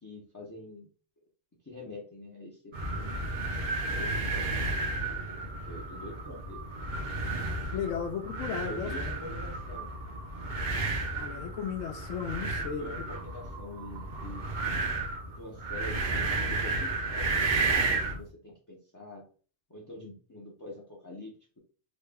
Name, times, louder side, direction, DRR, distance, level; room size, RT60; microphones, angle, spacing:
voice 1, 0.0-0.9 1.6-3.2 3.9-4.5 5.6-6.8 8.6-9.9 12.7-14.5 15.4-19.2 19.7-21.6, left 1 dB, 25° left, 0.5 m, -45 dB
sound 1, 2.7-18.2, right 3 dB, 50° right, 0.7 m, -32 dB
voice 2, 7.7-8.9 11.2-13.1, left 7 dB, 85° left, 0.9 m, -35 dB
3.0 x 2.2 x 3.3 m
omnidirectional pair, 1.3 m